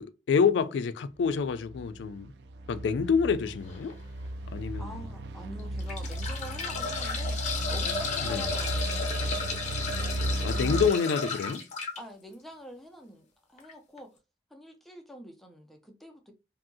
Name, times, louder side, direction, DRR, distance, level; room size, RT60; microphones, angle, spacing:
voice 1, 0.0-2.3 2.7-4.0 4.5-4.9 8.3-8.4 10.4-11.6, left 6 dB, 75° left, 0.3 m, -27 dB
sound 1, 1.2-10.9, right 1 dB, 70° right, 0.3 m, -35 dB
sound 2, 3.7-3.9 4.6-4.7 5.6-12.0 13.6-13.7 14.0-14.1, left 4 dB, 40° left, 0.7 m, -33 dB
voice 2, 4.8-9.6 10.4-10.9 12.0-14.1 14.5-16.3, equal, ahead, 0.4 m, -46 dB
2.7 x 2.6 x 2.6 m
head